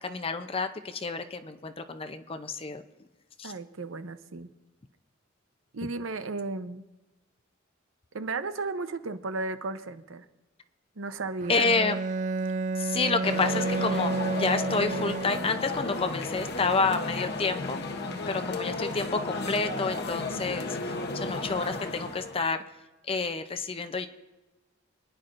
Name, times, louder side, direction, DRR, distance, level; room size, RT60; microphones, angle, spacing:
voice 1, 0.0-2.8 3.4-3.5 11.5-12.0 12.8-17.8 18.3-22.6 23.1-24.1, left 4 dB, 30° left, 9 dB, 0.6 m, -29 dB
voice 2, 3.4-4.5 5.7-6.8 8.1-10.2 11.0-11.7, right 3 dB, 80° right, 10 dB, 0.8 m, -34 dB
Bowed string instrument, 11.4-15.8, right 3 dB, 40° right, 0.3 m, -30 dB
sound 1, 13.2-22.4, left 2 dB, 55° left, 0.9 m, -34 dB
26.0 x 10.0 x 2.6 m, 1.1 s
head